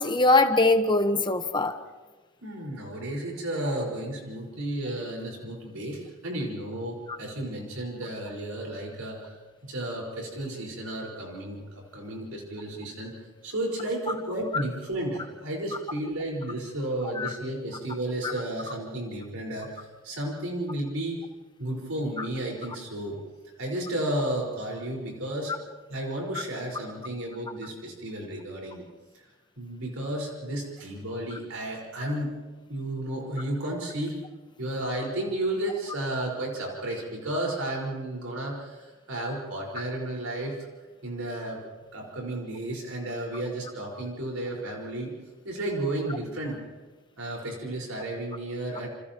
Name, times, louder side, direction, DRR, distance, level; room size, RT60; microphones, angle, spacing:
voice 1, 0.0-1.7 14.5-14.6 17.2-17.3 22.2-22.3, left 2 dB, 20° left, 7 dB, 1.2 m, -22 dB
voice 2, 2.4-9.4 9.6-13.1 13.4-21.2 21.6-23.2 23.6-25.6 25.9-28.8 29.1-29.3 29.6-32.4 32.7-34.2 34.6-40.6 41.0-41.6 41.9-45.1 45.4-46.6 47.2-48.9, right 1 dB, 80° right, -1 dB, 5.1 m, -33 dB
29.5 x 29.5 x 3.1 m, 1.3 s
head